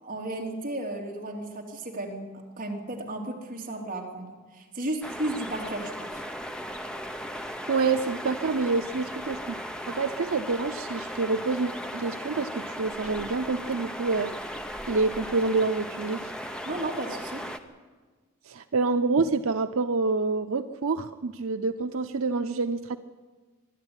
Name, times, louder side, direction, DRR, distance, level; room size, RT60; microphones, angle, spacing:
voice 1, 0.0-2.2 2.6-6.2 16.6-17.4, right 1 dB, 40° right, -1 dB, 3.4 m, -34 dB
sound 1, 5.0-17.6, equal, 5° left, 1.0 m, -37 dB
voice 2, 7.7-9.6 9.9-14.3 14.9-16.3 18.5-23.0, right 4 dB, 85° right, 7 dB, 0.7 m, -27 dB
25.0 x 11.5 x 9.8 m, 1.4 s
head